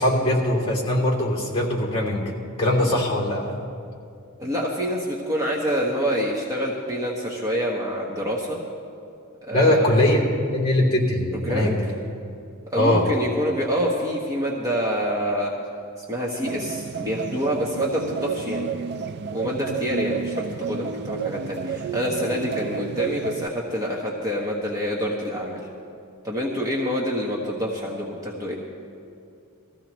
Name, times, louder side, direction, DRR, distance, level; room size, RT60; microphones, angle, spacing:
voice 1, 0.0-2.3 2.6-3.6 9.5-10.2 10.5-11.9 12.8-13.0, left 1 dB, 25° left, -2 dB, 2.8 m, -21 dB
voice 2, 4.4-8.6 9.4-10.0 11.3-11.8 12.7-15.5 16.1-18.7 19.3-25.7 26.2-28.6, equal, 15° right, -3 dB, 1.2 m, -27 dB
sound 1, 16.4-23.5, right 6 dB, 50° right, 0.4 m, -31 dB
20.5 x 15.0 x 3.1 m, 2.5 s
head